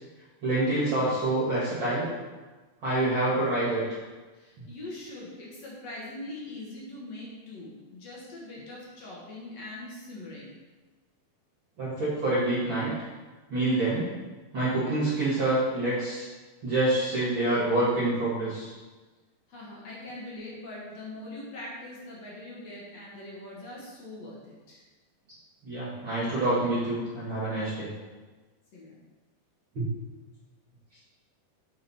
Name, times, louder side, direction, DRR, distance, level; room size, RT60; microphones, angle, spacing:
voice 1, 0.4-2.1 2.8-3.8 11.8-12.9 13.5-14.1 14.5-16.3 16.6-18.7 25.6-27.9 29.7-29.9, right 2 dB, 40° right, -9 dB, 2.0 m, -26 dB
voice 2, 4.3-10.5 19.5-24.8 28.7-29.0, left 2 dB, 55° left, -5 dB, 2.3 m, -42 dB
7.7 x 5.2 x 4.2 m, 1.3 s
omnidirectional pair, 4.4 m